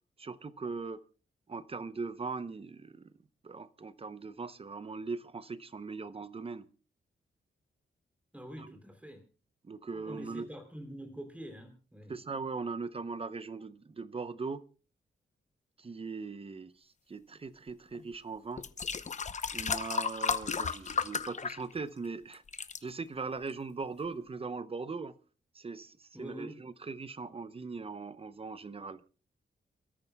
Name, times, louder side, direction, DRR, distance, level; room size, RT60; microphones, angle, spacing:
voice 1, 0.2-1.0 1.5-3.1 3.4-6.7 8.6-8.8 9.6-10.5 12.1-14.6 15.8-18.6 19.5-22.4 22.8-25.1 25.5-29.0, right 4 dB, 30° right, 0.7 m, -40 dB
voice 2, 8.3-9.2 9.9-12.1 26.1-26.6, equal, 5° right, 3.2 m, -45 dB
sound 1, 17.9-18.1 18.6-22.1 22.3-22.8 23.5-23.6, left 5 dB, 40° left, 0.8 m, -34 dB
28.5 x 13.5 x 2.3 m
wide cardioid pair, 135°, 20 cm